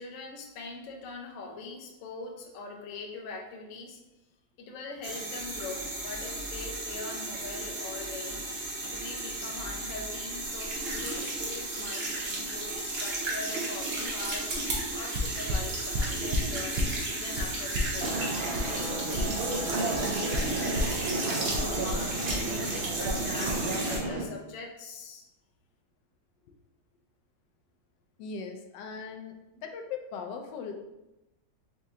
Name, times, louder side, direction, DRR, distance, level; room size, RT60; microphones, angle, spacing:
voice 1, 0.0-4.0 4.6-8.4 8.8-18.2 18.6-25.3, left 3 dB, 60° left, 1 dB, 0.9 m, -42 dB
sound 1, 5.0-24.0, right 2 dB, 50° right, 0.8 m, -34 dB
sound 2, 15.1-17.0 17.3-19.6 19.9-21.0 21.5-22.5 23.0-23.6 23.9-24.1, left 1 dB, 70° right, 1.1 m, -32 dB
sound 3, 18.0-24.3, right 2 dB, 90° right, 0.5 m, -33 dB
voice 2, 28.2-30.8, left 5 dB, 85° left, 4 dB, 1.2 m, -39 dB
4.3 x 2.7 x 3.5 m, 0.96 s
omnidirectional pair, 1.9 m